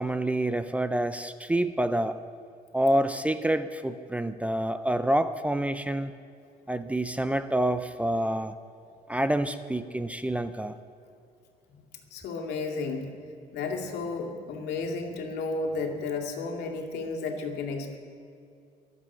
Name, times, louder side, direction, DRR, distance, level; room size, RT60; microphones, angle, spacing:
voice 1, 0.0-2.2 2.7-6.1 6.7-8.5 9.1-10.8, right 1 dB, 10° right, 11 dB, 0.5 m, -27 dB
voice 2, 12.1-13.1 13.5-18.0, left 3 dB, 80° left, 2 dB, 2.5 m, -33 dB
24.0 x 8.3 x 6.2 m, 2.5 s
cardioid pair, 110°, 17 cm